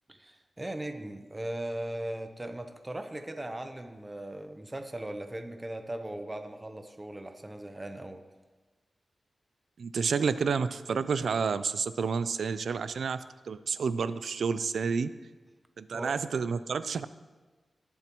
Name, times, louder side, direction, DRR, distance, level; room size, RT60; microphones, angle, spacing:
voice 1, 0.1-8.2 15.9-16.1, right 1 dB, 20° right, 6 dB, 0.8 m, -38 dB
voice 2, 9.8-15.1 15.8-17.1, right 5 dB, 85° right, 13 dB, 0.4 m, -30 dB
19.5 x 7.2 x 3.0 m, 1.3 s
wide cardioid pair, 110°, 0 cm